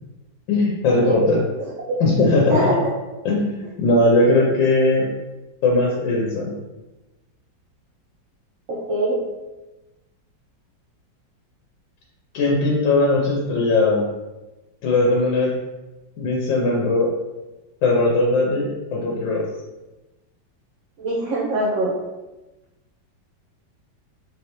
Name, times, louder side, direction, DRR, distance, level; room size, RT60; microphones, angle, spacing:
voice 1, 0.5-1.4 2.0-2.6 3.2-5.1 5.6-6.5 12.3-14.0 14.8-15.5 16.2-17.1 17.8-19.4, left 2 dB, 90° left, -2 dB, 1.4 m, -19 dB
voice 2, 2.5-2.9 8.7-9.2 21.0-22.0, right 1 dB, 70° right, -4 dB, 0.7 m, -22 dB
3.9 x 3.2 x 2.9 m, 1.1 s
omnidirectional pair, 2.0 m